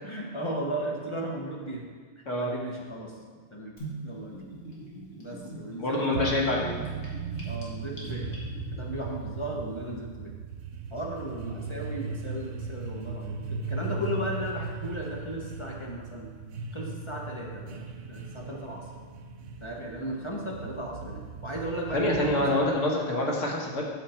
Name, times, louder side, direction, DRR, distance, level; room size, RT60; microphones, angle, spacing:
voice 1, 0.0-1.8 2.2-3.1 3.5-3.8 4.0-4.4 5.2-6.4 7.4-8.4 8.7-10.3 10.9-16.3 16.7-18.8 19.6-22.7, right 1 dB, 25° left, -3 dB, 1.1 m, -35 dB
Gurgling / Bathtub (filling or washing), 3.8-8.8, right 3 dB, 65° left, 2.0 m, -42 dB
voice 2, 5.8-6.7 21.9-23.8, left 1 dB, 85° left, -1 dB, 1.7 m, -26 dB
sound 1, 6.1-22.9, right 4 dB, 85° right, 1.0 m, -38 dB
8.0 x 6.5 x 4.4 m, 1.6 s
omnidirectional pair, 1.3 m